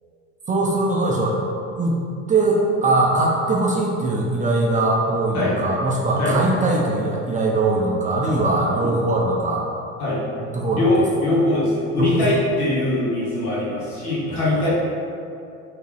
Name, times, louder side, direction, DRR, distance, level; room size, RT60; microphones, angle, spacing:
voice 1, 0.5-1.4 1.8-2.0 2.3-9.6 10.5-11.0 12.0-12.2 14.3-14.6, right 2 dB, 20° right, -2 dB, 0.4 m, -21 dB
voice 2, 10.7-14.7, left 1 dB, 85° left, -8 dB, 1.4 m, -21 dB
3.4 x 2.8 x 3.3 m, 2.5 s
hypercardioid pair, 80°, 43 cm